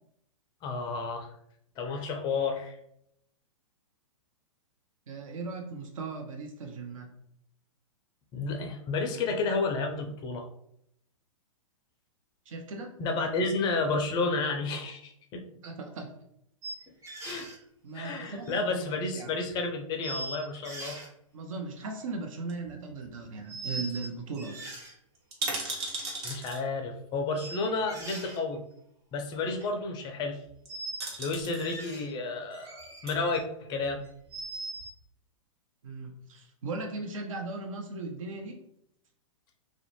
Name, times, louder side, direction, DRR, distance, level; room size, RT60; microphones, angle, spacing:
voice 1, 0.6-1.3 1.8-2.8 8.3-10.5 13.0-15.4 17.2-17.5 17.9-21.0 26.2-28.6 29.1-30.4 31.2-34.0, left 3 dB, 25° left, 3 dB, 0.4 m, -31 dB
voice 2, 5.1-7.1 12.5-12.9 15.5-16.1 17.8-19.4 21.3-24.7 35.8-38.6, right 3 dB, 70° right, 3 dB, 0.6 m, -38 dB
sound 1, 16.6-17.6 18.0-19.0 19.5-19.6 20.0-21.1 21.9-22.2 23.5-24.1 24.3-24.9 25.7-25.8 27.4-28.4 29.4-29.7 30.7-31.1 31.5-32.1 32.5-33.4 33.8-34.9, right 2 dB, 15° right, 0.8 m, -41 dB
sound 2, 22.5-23.3 23.6-23.7 23.9-24.1 24.3-24.4 25.1-26.6 27.8-27.9 30.4-30.7 31.0-31.6 32.8-33.2 33.8-34.5 34.8-34.9, right 2 dB, 50° right, 1.0 m, -37 dB
2.4 x 2.1 x 3.0 m, 0.73 s
hypercardioid pair, 115°, 18 cm